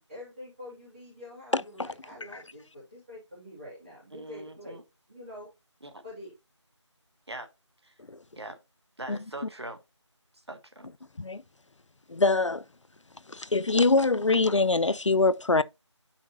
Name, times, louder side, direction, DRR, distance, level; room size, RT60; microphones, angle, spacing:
voice 1, 0.1-4.8 5.1-5.5 6.0-6.3, left 1 dB, 20° right, 2.5 m, -45 dB
voice 2, 4.1-4.8 5.8-6.0 7.3-7.5 7.8-7.9 8.4-8.6 9.0-9.8 10.3-10.9, right 2 dB, 60° right, 1.3 m, -42 dB
voice 3, 12.1-12.6 13.3-15.6, left 3 dB, 75° left, 0.6 m, -23 dB
8.4 x 5.8 x 2.8 m
figure-of-eight pair, 170°, 16 cm